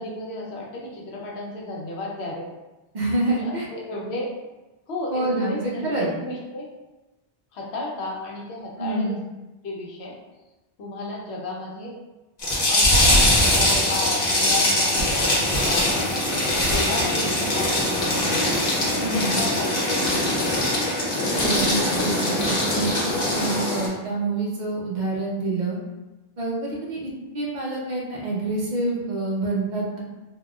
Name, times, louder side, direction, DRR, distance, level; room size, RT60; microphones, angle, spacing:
voice 1, 0.0-2.5 3.3-4.3 4.9-6.7 7.5-9.2 9.6-10.2 10.8-11.9 12.7-18.4 19.0-20.5, left 2 dB, 90° left, -2 dB, 1.0 m, -33 dB
voice 2, 2.9-3.7 5.1-6.1 8.8-9.2 19.0-19.4 21.4-25.8 26.4-30.0, right 2 dB, 50° right, -4 dB, 0.7 m, -27 dB
sound 1, 12.4-23.9, left 1 dB, 45° left, 0.8 m, -22 dB
3.6 x 2.3 x 2.3 m, 1.1 s
omnidirectional pair, 1.0 m